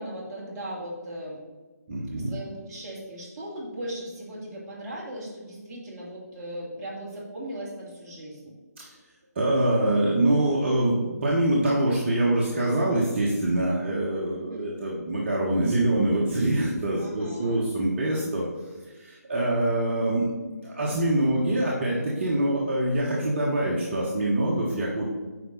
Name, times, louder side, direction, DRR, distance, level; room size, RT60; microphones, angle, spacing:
voice 1, 0.0-1.4 2.2-8.5 14.4-14.7 17.0-17.7, right 1 dB, 20° right, -6 dB, 2.5 m, -38 dB
voice 2, 1.9-2.3 8.8-8.9 9.3-18.4 18.9-20.3 20.6-25.1, right 1 dB, 40° right, -4 dB, 1.4 m, -24 dB
9.3 x 5.5 x 4.0 m, 1.3 s
figure-of-eight pair, 150°, 9 cm